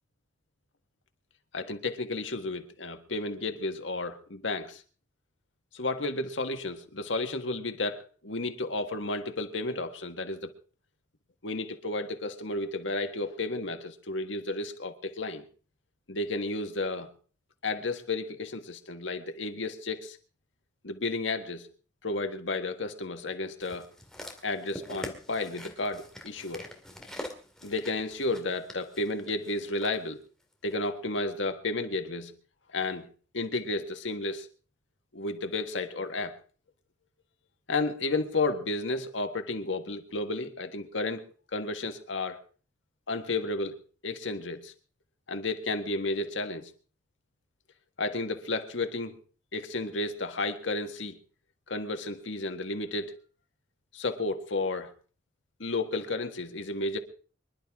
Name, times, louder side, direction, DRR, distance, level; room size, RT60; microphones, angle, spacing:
voice 1, 1.5-4.8 5.7-10.5 11.4-15.4 16.1-17.1 17.6-20.2 20.8-21.7 22.0-23.9 24.4-26.7 27.6-30.2 30.6-32.3 32.7-33.1 33.3-34.5 35.1-36.4 37.7-41.2 41.5-42.4 43.1-43.8 44.0-44.7 45.3-46.7 48.0-49.1 49.5-51.2 51.7-53.1 53.9-54.9 55.6-57.0, left 2 dB, 90° left, 6 dB, 1.7 m, -32 dB
sound 1, 23.6-30.0 30.7-30.8, left 1 dB, 5° left, 2.1 m, -44 dB
25.5 x 11.5 x 3.7 m, 0.39 s
head